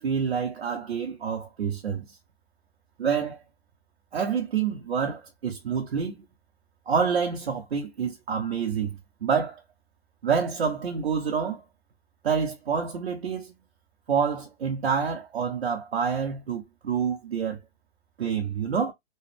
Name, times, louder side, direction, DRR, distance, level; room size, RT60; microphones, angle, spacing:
voice 1, 0.0-2.2 3.0-3.4 4.1-6.2 6.9-9.6 10.2-11.6 12.2-13.5 14.1-17.6 18.2-18.9, right 6 dB, 75° right, 1.0 m, -27 dB
3.2 x 2.3 x 3.3 m
hypercardioid pair, 135°, 31 cm